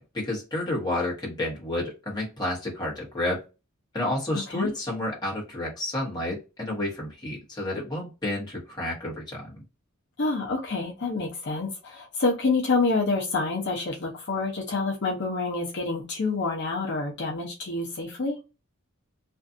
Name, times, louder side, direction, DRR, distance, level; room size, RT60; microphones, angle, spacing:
voice 1, 0.1-3.4 3.9-9.6, left 1 dB, 20° left, -4 dB, 1.1 m, -30 dB
voice 2, 4.3-4.7 10.2-18.4, left 3 dB, 55° left, -1 dB, 0.7 m, -27 dB
2.6 x 2.4 x 2.5 m, 0.29 s
head